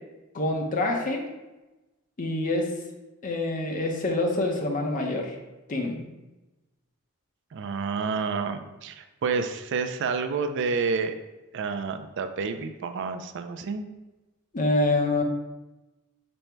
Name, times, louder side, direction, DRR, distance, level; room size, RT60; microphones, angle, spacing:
voice 1, 0.3-1.2 2.2-2.7 3.2-5.3 5.7-6.1 14.5-15.2, left 2 dB, 40° left, 1 dB, 0.7 m, -26 dB
voice 2, 7.5-11.2 11.5-13.8, right 5 dB, 60° right, 8 dB, 0.4 m, -29 dB
5.2 x 2.1 x 4.4 m, 1.1 s
head